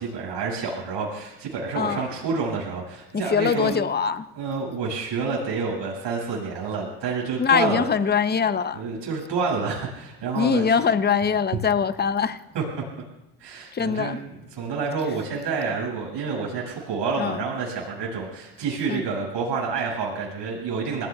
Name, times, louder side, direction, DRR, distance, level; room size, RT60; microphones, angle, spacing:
voice 1, 0.0-3.7 4.3-7.8 8.7-10.8 12.5-12.6 13.4-14.2 14.5-21.1, right 4 dB, 70° right, 6.7 m, -28 dB
voice 2, 1.7-2.1 3.1-4.3 7.4-8.8 10.3-12.4 13.7-14.2 17.2-17.4 18.9-19.0, left 6 dB, 25° left, 0.7 m, -23 dB
27.5 x 19.0 x 2.4 m
cardioid pair, 80°, 43 cm